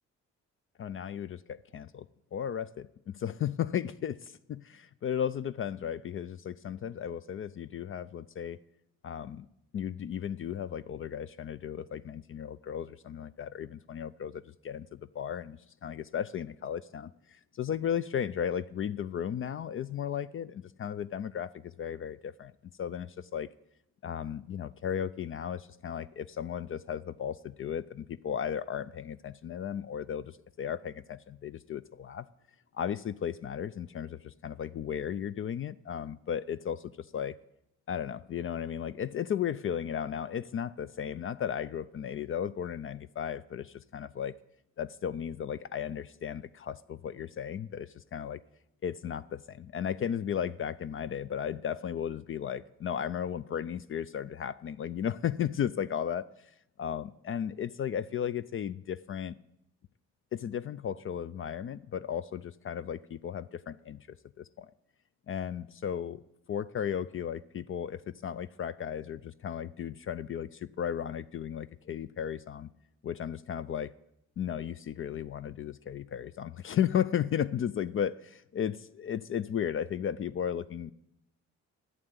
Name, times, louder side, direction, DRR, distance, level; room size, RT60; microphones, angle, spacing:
voice 1, 0.8-2.1 2.3-2.9 3.1-8.6 9.0-9.5 9.7-22.5 22.8-23.5 24.0-32.3 32.7-37.4 37.9-44.4 44.8-48.4 48.8-56.3 56.8-59.4 60.3-64.0 64.4-64.7 65.3-66.2 66.5-72.7 73.0-73.9 74.4-80.9, left 9 dB, 45° left, 0.4 m, -35 dB
11.0 x 8.0 x 9.4 m
cardioid pair, 90°, 30 cm